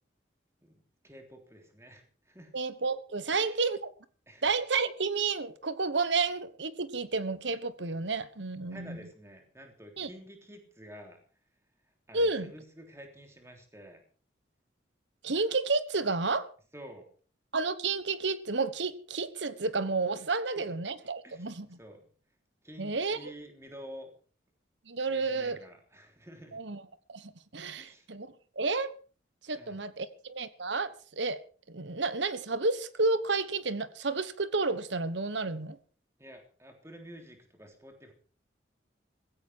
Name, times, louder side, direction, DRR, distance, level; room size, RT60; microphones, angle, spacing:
voice 1, 0.6-2.5 3.3-3.6 4.3-4.4 8.7-11.2 12.1-14.0 16.7-17.1 20.5-20.7 21.2-21.5 21.8-22.0 22.6-24.1 25.1-26.6 27.7-28.1 29.5-29.9 36.2-38.1, equal, 15° right, 3.4 m, -50 dB
voice 2, 2.5-3.9 4.4-9.0 10.0-10.1 12.1-12.5 15.2-16.5 17.5-21.8 22.8-23.3 24.9-25.6 26.5-26.8 27.1-28.9 29.4-31.4 31.7-35.8, right 3 dB, 75° right, 1.3 m, -31 dB
16.0 x 16.0 x 4.7 m
head